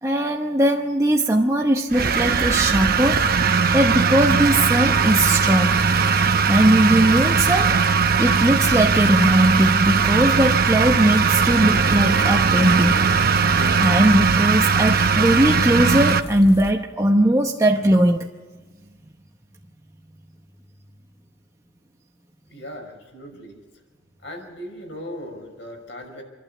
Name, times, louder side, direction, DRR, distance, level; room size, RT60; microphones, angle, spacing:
voice 1, 0.0-3.2 3.7-5.9 6.5-7.8 8.2-13.1 13.4-18.3, right 1 dB, 15° right, 0.9 m, -19 dB
sound 1, 1.9-16.2, right 5 dB, 55° right, 0.8 m, -19 dB
sound 2, 4.8-16.7, left 2 dB, 60° left, 2.2 m, -38 dB
sound 3, 11.4-14.6, right 3 dB, 70° right, 1.1 m, -30 dB
voice 2, 22.5-23.6 24.2-26.2, equal, 75° left, 5.9 m, -38 dB
28.0 x 12.0 x 8.3 m
head